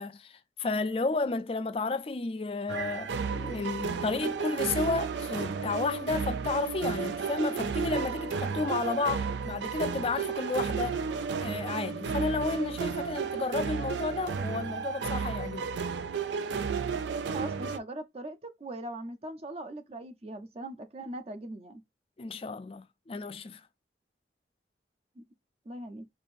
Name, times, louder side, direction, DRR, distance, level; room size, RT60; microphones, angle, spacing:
voice 1, 0.0-11.0 11.4-15.7 22.2-23.6, left 3 dB, 30° left, 0.4 m, -32 dB
sound 1, 2.7-17.8, right 5 dB, 85° right, 0.4 m, -33 dB
voice 2, 17.3-21.8 25.2-25.3 25.7-26.1, right 1 dB, 35° right, 0.5 m, -40 dB
4.6 x 2.6 x 2.5 m
head